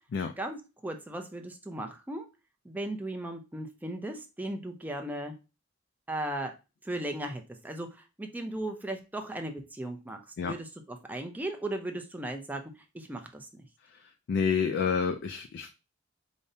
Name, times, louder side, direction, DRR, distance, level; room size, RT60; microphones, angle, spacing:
voice 1, 0.4-2.2 2.6-5.3 6.1-6.5 6.8-13.6, right 1 dB, 10° right, 5 dB, 0.4 m, -37 dB
voice 2, 13.8-15.7, left 6 dB, 60° left, 7 dB, 0.3 m, -29 dB
5.1 x 2.1 x 2.6 m, 0.29 s
head